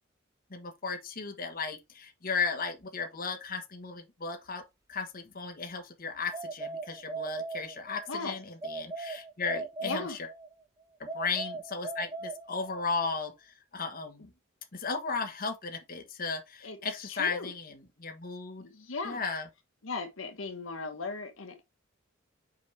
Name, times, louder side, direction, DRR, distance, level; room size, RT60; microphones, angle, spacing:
voice 1, 0.5-4.6 4.9-10.2 11.0-14.3 14.7-17.7 18.0-18.7 19.0-19.5, left 4 dB, 45° left, 1.2 m, -35 dB
sound 1, 6.3-8.1 8.6-10.5 11.1-12.9, right 3 dB, 20° right, 0.7 m, -39 dB
voice 2, 8.1-8.4 9.8-10.2 16.6-17.5 18.6-19.2 19.8-21.6, left 4 dB, 75° left, 1.2 m, -37 dB
6.1 x 4.8 x 3.2 m
head